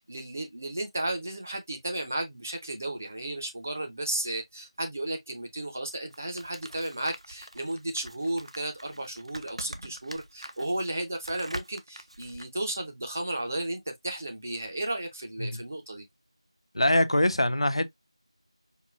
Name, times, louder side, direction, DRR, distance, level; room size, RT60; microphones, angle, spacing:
voice 1, 0.0-16.0, right 1 dB, 25° right, 0.6 m, -34 dB
sound 1, 6.1-12.5, right 1 dB, 75° right, 0.6 m, -44 dB
voice 2, 16.7-17.9, left 1 dB, 65° left, 0.5 m, -23 dB
4.7 x 2.4 x 2.4 m
figure-of-eight pair, 175°, 3 cm